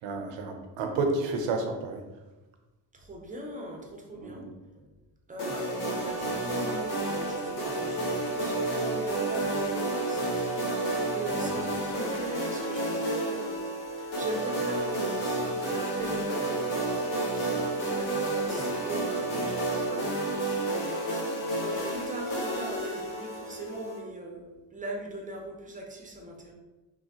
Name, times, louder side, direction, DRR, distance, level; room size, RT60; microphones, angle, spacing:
voice 1, 0.0-2.0 4.2-4.5 11.3-11.6, right 3 dB, 75° right, 4 dB, 0.7 m, -31 dB
voice 2, 2.9-4.4 4.7-4.9 5.3-13.6 14.0-17.0 17.3-21.1 21.6-26.5, right 1 dB, 20° right, 0 dB, 0.7 m, -40 dB
sound 1, 5.4-24.0, right 2 dB, 85° left, 1.0 m, -30 dB
3.1 x 2.2 x 2.8 m, 1.1 s
supercardioid pair, 70°, 44 cm